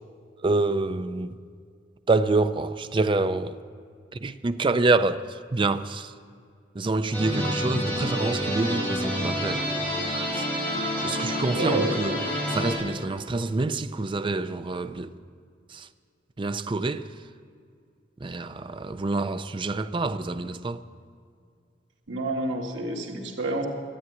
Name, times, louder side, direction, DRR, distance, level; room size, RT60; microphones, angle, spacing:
voice 1, 0.4-1.4 2.1-3.6 4.2-5.2 5.5-6.1 6.8-9.7 10.1-10.4 11.0-12.1 12.5-15.2 15.7-15.8 16.4-17.1 18.2-20.8, right 3 dB, 30° right, 0.5 m, -26 dB
sound 1, 7.1-12.8, equal, 10° left, 4.2 m, -28 dB
voice 2, 11.5-12.0 22.1-23.7, right 2 dB, 85° right, 2.0 m, -29 dB
12.5 x 8.9 x 9.5 m
head